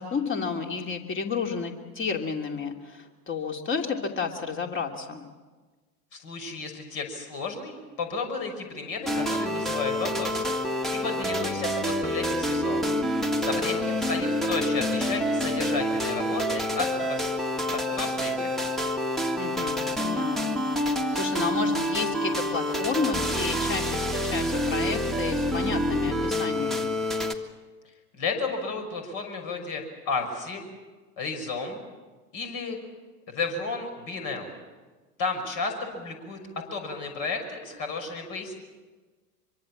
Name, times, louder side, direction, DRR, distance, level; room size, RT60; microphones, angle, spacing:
voice 1, 0.0-5.3 13.5-13.8 19.4-20.6 21.1-26.9, left 5 dB, 25° left, 3 dB, 3.0 m, -31 dB
voice 2, 6.1-10.5 10.9-12.9 13.4-17.3 17.7-18.5 28.1-30.6 31.2-31.8 32.3-32.8 33.3-34.5 35.2-36.4 36.7-38.6, left 4 dB, 50° left, 4 dB, 6.0 m, -33 dB
sound 1, 9.0-27.3, equal, ahead, 1.7 m, -27 dB
25.0 x 23.5 x 7.4 m, 1.3 s
hypercardioid pair, 90°, 46 cm